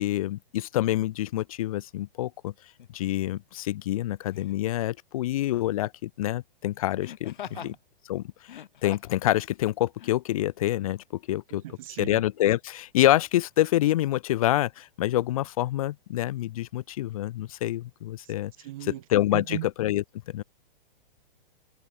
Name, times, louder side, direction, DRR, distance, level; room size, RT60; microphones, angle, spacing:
voice 1, 0.0-2.5 2.9-7.7 8.1-8.2 8.8-11.6 12.0-18.5 18.8-20.4, left 14 dB, 35° left, 1.7 m, -27 dB
Laughter, 2.8-3.0 4.3-4.7 7.0-7.8 8.4-9.2 10.0-10.1, left 10 dB, 55° left, 7.1 m, -42 dB
voice 2, 11.6-12.2 18.2-18.3 18.6-19.0 19.3-19.7, right 16 dB, 35° right, 3.7 m, -37 dB
hypercardioid pair, 175°, 29 cm